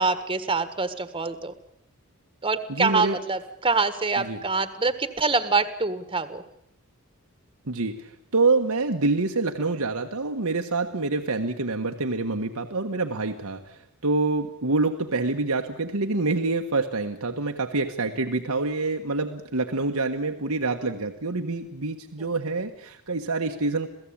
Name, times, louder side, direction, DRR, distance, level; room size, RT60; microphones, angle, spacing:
voice 1, 0.0-1.5 2.4-6.4, right 4 dB, 25° right, 11 dB, 1.5 m, -25 dB
voice 2, 2.7-3.2 4.2-4.4 7.7-23.9, right 3 dB, 80° right, 4 dB, 1.5 m, -26 dB
27.5 x 17.0 x 8.7 m, 0.77 s
head